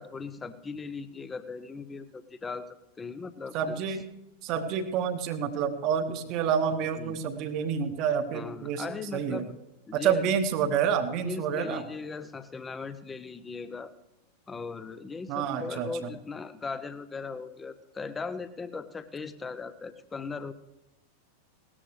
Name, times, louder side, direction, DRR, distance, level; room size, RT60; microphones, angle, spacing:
voice 1, 0.0-3.8 7.0-7.2 8.3-9.5 9.9-10.2 11.2-13.9 14.5-20.5, left 4 dB, 15° left, 13 dB, 0.7 m, -38 dB
voice 2, 3.5-4.0 4.4-9.4 9.9-11.8 15.3-15.9, right 7 dB, 40° right, 10 dB, 1.1 m, -28 dB
18.0 x 13.5 x 3.3 m, 0.95 s
figure-of-eight pair, 90°, 0 cm